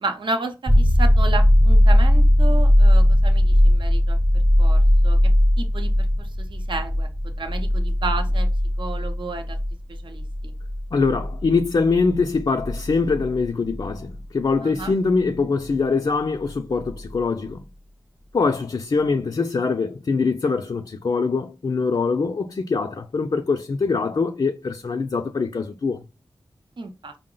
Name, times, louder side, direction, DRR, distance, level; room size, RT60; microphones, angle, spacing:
voice 1, 0.0-4.2 4.6-5.3 5.6-7.1 7.4-8.5 8.8-9.6 9.9-10.5 14.6-14.9 26.8-27.1, right 3 dB, 65° right, 0.7 m, -32 dB
sound 1, 0.7-14.2 16.9-17.0, equal, 15° right, 0.7 m, -18 dB
voice 2, 10.9-17.6 18.3-26.0, left 4 dB, 50° left, 0.4 m, -23 dB
4.7 x 2.0 x 3.8 m
wide cardioid pair, 65°, 9 cm